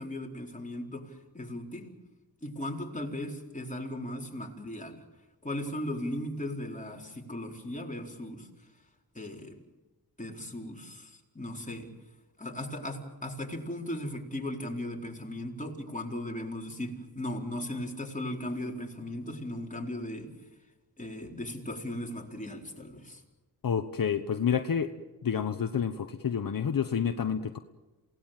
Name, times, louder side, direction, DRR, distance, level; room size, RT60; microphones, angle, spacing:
voice 1, 0.0-1.9 2.4-5.0 5.4-8.5 9.1-9.5 10.2-11.9 12.4-20.3 21.0-23.2, left 1 dB, 20° left, 0 dB, 4.4 m, -37 dB
voice 2, 23.6-24.9 25.2-27.6, left 7 dB, 55° left, 8 dB, 1.1 m, -29 dB
28.5 x 18.5 x 7.6 m, 1.2 s
cardioid pair, 80°, 40 cm